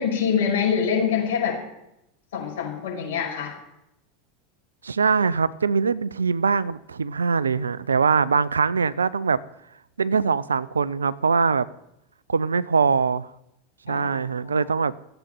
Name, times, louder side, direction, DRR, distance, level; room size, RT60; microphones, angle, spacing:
voice 1, 0.0-1.6 2.3-3.5 13.9-14.6, left 7 dB, 65° left, 0 dB, 5.8 m, -25 dB
voice 2, 4.8-9.4 10.0-11.7 12.3-13.3 13.9-14.9, right 5 dB, 80° right, 18 dB, 0.5 m, -22 dB
15.0 x 8.1 x 9.0 m, 0.83 s
figure-of-eight pair, 85°, 0 cm